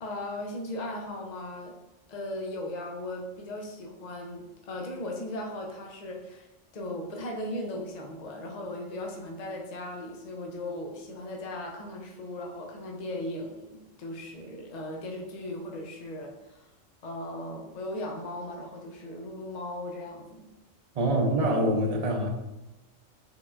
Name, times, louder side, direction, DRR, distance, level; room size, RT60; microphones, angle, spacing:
voice 1, 0.0-1.8 2.1-6.5 6.7-16.7 17.0-20.5, left 1 dB, 50° left, 1 dB, 0.5 m, -37 dB
voice 2, 21.0-22.3, right 1 dB, 45° right, 1 dB, 0.5 m, -25 dB
4.6 x 3.7 x 2.5 m, 0.98 s
omnidirectional pair, 1.3 m